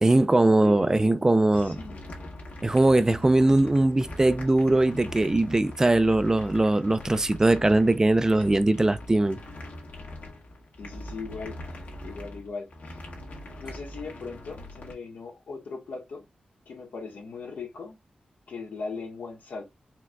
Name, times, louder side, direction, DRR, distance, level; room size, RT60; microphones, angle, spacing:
voice 1, 0.0-1.8 2.6-9.4, right 2 dB, 20° right, 0.4 m, -21 dB
voice 2, 0.6-1.3 1.6-2.2 10.8-11.6 12.0-13.0 13.6-16.2 16.7-18.0 18.5-19.6, left 4 dB, 90° left, 1.4 m, -39 dB
sound 1, 1.5-14.9, left 1 dB, 75° left, 1.7 m, -42 dB
4.6 x 3.5 x 2.2 m
wide cardioid pair, 95°, 3 cm